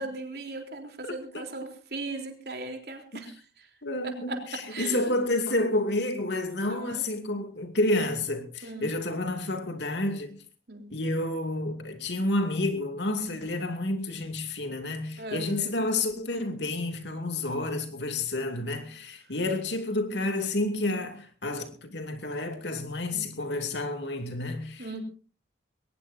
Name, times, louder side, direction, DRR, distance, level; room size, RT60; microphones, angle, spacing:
voice 1, 0.0-3.7 4.0-5.2 6.7-7.0 8.6-8.9 10.7-10.9 15.2-15.7 23.1-23.3 24.8-25.0, right 2 dB, 65° right, 3.6 m, -38 dB
voice 2, 3.8-10.4 10.9-25.0, left 2 dB, 85° left, 2.6 m, -30 dB
21.5 x 19.0 x 2.7 m
head